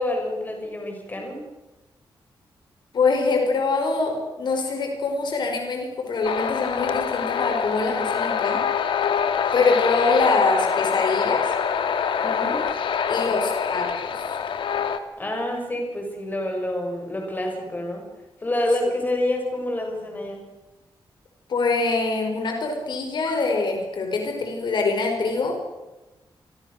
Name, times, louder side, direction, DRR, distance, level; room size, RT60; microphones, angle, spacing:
voice 1, 0.0-1.4 12.2-12.6 15.2-18.1 18.4-20.4, left 1 dB, 20° left, 2 dB, 6.5 m, -27 dB
voice 2, 2.9-9.0 9.5-11.5 13.1-14.4 21.5-25.6, left 3 dB, 65° left, 3 dB, 5.0 m, -24 dB
sound 1, 6.2-15.0, left 7 dB, 80° left, 2.1 m, -25 dB
28.0 x 24.0 x 6.7 m, 1.0 s
wide cardioid pair, 150°, 8 cm